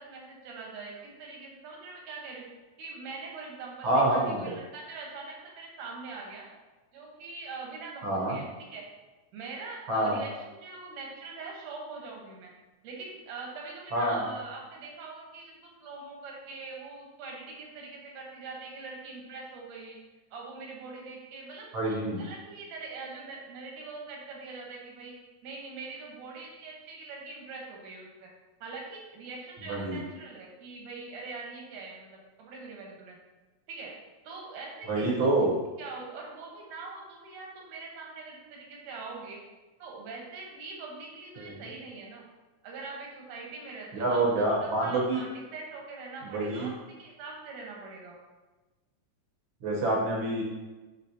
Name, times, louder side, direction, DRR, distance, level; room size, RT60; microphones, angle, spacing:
voice 1, 0.0-2.5 2.8-6.5 6.9-8.9 9.3-12.5 12.8-20.0 20.3-25.1 25.4-28.3 28.6-33.2 33.7-33.9 34.2-35.3 35.8-39.4 39.8-42.2 42.6-48.2, right 3 dB, 85° right, -1 dB, 2.7 m, -43 dB
voice 2, 3.8-4.6 8.0-8.4 9.9-10.2 13.9-14.2 21.7-22.2 29.7-30.0 34.9-35.5 41.4-41.6 43.9-45.2 46.2-46.7 49.6-50.4, right 2 dB, 70° right, -3 dB, 1.2 m, -27 dB
9.0 x 4.6 x 2.7 m, 1.2 s
omnidirectional pair, 3.5 m